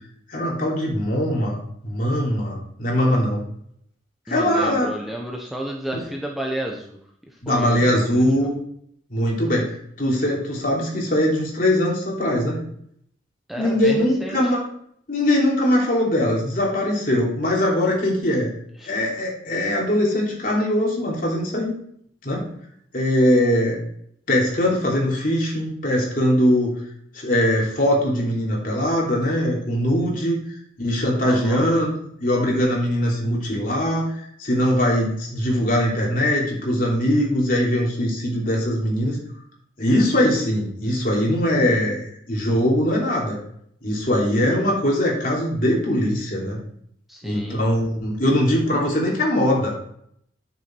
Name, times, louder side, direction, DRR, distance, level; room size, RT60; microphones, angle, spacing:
voice 1, 0.3-3.4 4.3-4.9 5.9-6.0 7.4-8.5 9.1-12.6 13.6-14.6 15.1-18.5 18.8-21.7 22.2-22.5 22.9-23.8 24.3-26.8 27.1-31.9 32.2-39.2 39.8-42.0 42.3-43.4 43.8-46.6 47.2-49.7, left 1 dB, 50° left, -3 dB, 3.1 m, -21 dB
voice 2, 4.3-7.0 7.5-8.5 13.5-14.4 18.8-18.9 31.2-31.6 47.1-47.6, right 1 dB, ahead, -1 dB, 0.9 m, -32 dB
9.3 x 7.0 x 4.6 m, 0.69 s
head